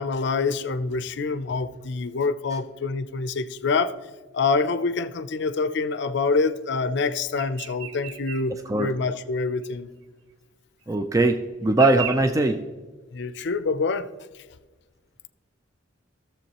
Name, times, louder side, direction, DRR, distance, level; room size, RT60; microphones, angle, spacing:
voice 1, 0.0-3.9 4.3-9.9 13.1-14.1, left 4 dB, 60° left, 13 dB, 0.5 m, -26 dB
sound 1, 7.4-8.5 8.8-8.9 9.6-9.7 10.8-10.9 11.7-12.2, right 9 dB, 80° right, 0.7 m, -34 dB
voice 2, 10.9-12.6, right 2 dB, 15° right, 6 dB, 0.4 m, -21 dB
15.5 x 7.0 x 3.0 m, 1.3 s
head